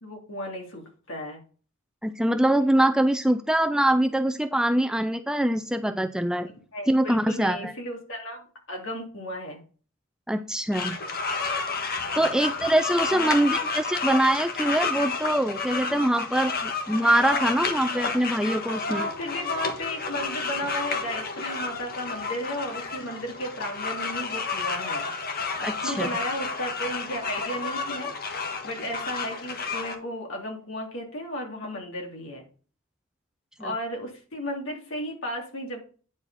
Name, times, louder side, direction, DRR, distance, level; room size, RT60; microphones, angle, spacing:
voice 1, 0.0-1.4 6.7-9.6 12.1-12.3 13.1-13.4 18.8-25.1 25.6-28.1 28.6-32.4 33.6-35.8, equal, 60° left, 1 dB, 3.0 m, -34 dB
voice 2, 2.0-6.5 6.9-7.7 10.3-11.0 12.1-19.1 25.6-26.1 33.6-33.7, right 1 dB, 5° right, 8 dB, 0.4 m, -24 dB
sound 1, 10.7-29.9, left 4 dB, 45° left, 1.4 m, -31 dB
9.5 x 4.8 x 5.6 m, 0.39 s
head